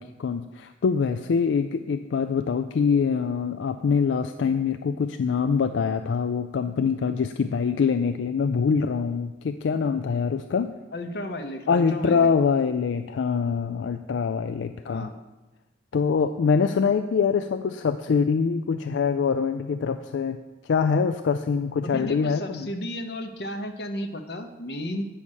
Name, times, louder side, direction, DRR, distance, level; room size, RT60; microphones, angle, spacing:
voice 1, 0.0-10.7 11.7-15.1 15.9-20.4 20.6-22.7, left 5 dB, 85° left, 8 dB, 0.4 m, -24 dB
voice 2, 10.9-12.3 14.8-15.1 21.8-25.0, left 1 dB, 60° left, 6 dB, 0.7 m, -33 dB
8.6 x 5.5 x 6.3 m, 1.1 s
head